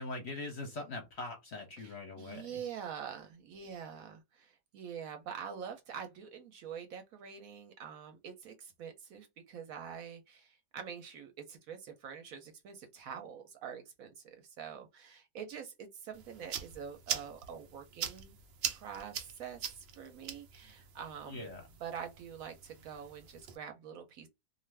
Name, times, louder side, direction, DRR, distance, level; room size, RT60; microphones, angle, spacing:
voice 1, 0.0-2.6 21.3-21.6, left 2 dB, 55° left, 0.8 m, -42 dB
voice 2, 1.8-18.4 18.7-21.5 21.8-24.3, right 7 dB, 70° right, 0.9 m, -45 dB
sound 1, 16.1-23.6, right 8 dB, 85° right, 0.5 m, -43 dB
2.6 x 2.4 x 3.2 m
omnidirectional pair, 1.7 m